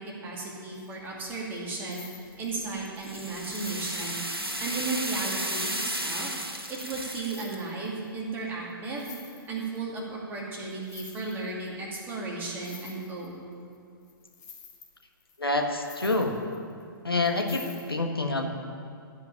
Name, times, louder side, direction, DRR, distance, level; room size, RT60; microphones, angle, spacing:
voice 1, 0.0-2.1 2.4-4.2 4.6-9.1 9.5-13.4, right 3 dB, 15° right, -3 dB, 2.5 m, -35 dB
sound 1, 0.7-1.0 1.2-2.7 3.2-3.3 3.5-4.7 5.1-5.2 5.5-6.5 7.1-8.1 8.4-8.5 8.7-9.8 10.7-11.7 12.0-12.1 12.4-13.8 14.0-16.8 17.2-17.9, left 6 dB, 45° left, 2.2 m, -49 dB
sound 2, 2.4-7.5, right 1 dB, 90° right, 1.4 m, -33 dB
voice 2, 15.4-16.3 17.0-17.6 17.9-18.5, left 2 dB, 80° left, 2 dB, 1.6 m, -27 dB
15.0 x 5.7 x 8.9 m, 2.3 s
figure-of-eight pair, 120°, 12 cm